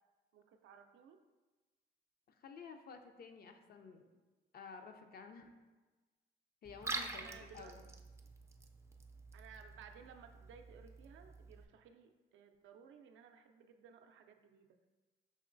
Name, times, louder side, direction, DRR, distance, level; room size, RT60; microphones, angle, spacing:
voice 1, 0.3-1.2 7.1-7.9 9.3-14.8, right 6 dB, 75° right, 6 dB, 0.4 m, -58 dB
voice 2, 2.3-4.1 4.5-5.5 6.6-7.8, left 5 dB, 50° left, 6 dB, 0.5 m, -53 dB
Liquid, 6.6-11.6, right 3 dB, 15° right, 0.3 m, -47 dB
5.4 x 3.0 x 2.5 m, 1.2 s
cardioid pair, 90°, 20 cm